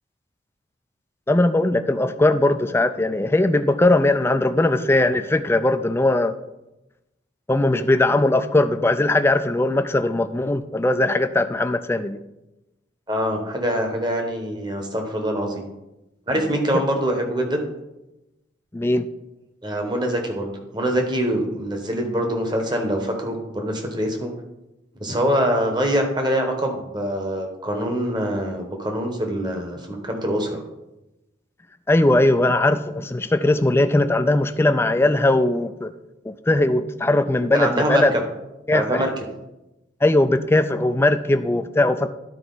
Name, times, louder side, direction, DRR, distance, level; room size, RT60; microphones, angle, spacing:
voice 1, 1.3-6.3 7.5-12.2 18.7-19.1 31.9-35.9 36.3-38.1 38.7-39.1 40.0-42.1, left 2 dB, 10° left, 10 dB, 0.3 m, -19 dB
voice 2, 13.1-15.6 16.3-17.6 19.6-24.3 25.0-30.6 37.5-38.1 38.7-39.1, equal, 25° right, 3 dB, 1.1 m, -24 dB
11.5 x 4.5 x 3.9 m, 0.96 s
head